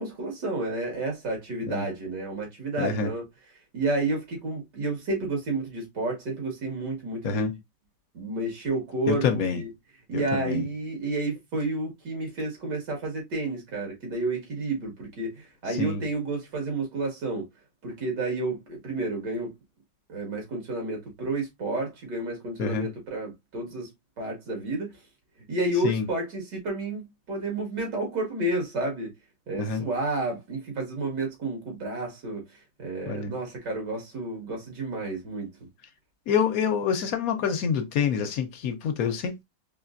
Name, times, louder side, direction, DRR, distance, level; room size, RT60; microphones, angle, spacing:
voice 1, 0.0-3.2 3.7-7.5 8.1-9.7 10.1-17.4 17.8-19.5 20.1-23.9 24.2-24.9 25.5-29.1 29.5-32.4 32.8-35.5, right 2 dB, 85° right, 2.5 m, -30 dB
voice 2, 2.8-3.1 7.2-7.5 9.1-9.6 10.1-10.7 15.8-16.0 22.6-22.9 25.8-26.1 29.6-29.8 33.1-33.3 36.3-39.4, left 6 dB, 65° left, 1.0 m, -27 dB
4.4 x 3.2 x 2.5 m
omnidirectional pair, 1.8 m